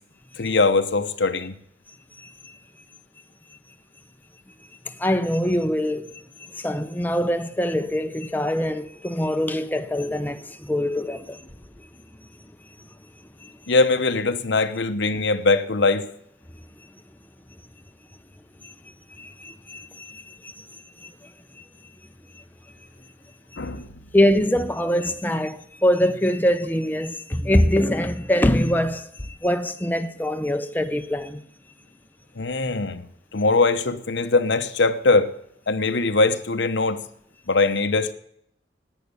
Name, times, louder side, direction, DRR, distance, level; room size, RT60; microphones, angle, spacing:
voice 1, 0.4-1.5 13.7-16.1 23.6-23.9 32.4-33.1 33.3-35.3 35.7-37.0 37.5-38.1, left 3 dB, 80° left, 1.0 m, -21 dB
voice 2, 2.2-2.6 4.9-6.2 6.5-11.5 11.8-11.9 13.4-13.5 18.6-18.7 19.2-20.7 21.0-21.6 22.3-22.4 23.5-23.6 24.1-31.4, equal, 10° left, 0.6 m, -24 dB
11.0 x 9.3 x 8.4 m
head